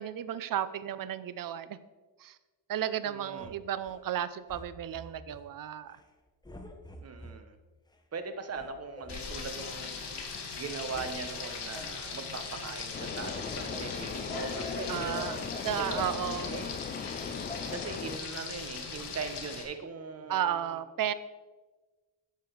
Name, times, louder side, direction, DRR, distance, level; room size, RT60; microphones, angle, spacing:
voice 1, 0.0-1.8 2.2-2.4 2.7-6.0 14.9-15.4 15.6-16.5 20.3-21.1, right 10 dB, 50° right, 14 dB, 0.6 m, -33 dB
voice 2, 3.0-3.5 7.0-7.6 8.1-10.2 10.5-15.2 15.7-16.1 16.5-16.7 17.7-20.7, right 5 dB, 35° right, 8 dB, 1.0 m, -40 dB
sound 1, 3.4-4.0 4.5-5.5 5.9-6.1 6.4-7.4 7.9-8.0 8.5-9.7 10.3-10.4 10.7-11.1 11.4-12.0 12.5-12.8 13.0-14.8 15.2-16.7 17.5-17.6, left 1 dB, 10° left, 1.0 m, -47 dB
Frying (food), 9.1-19.6, left 5 dB, 70° left, 1.9 m, -39 dB
sound 2, 12.9-18.2, left 6 dB, 25° left, 0.4 m, -39 dB
11.0 x 6.9 x 4.7 m, 1.3 s
cardioid pair, 135°, 42 cm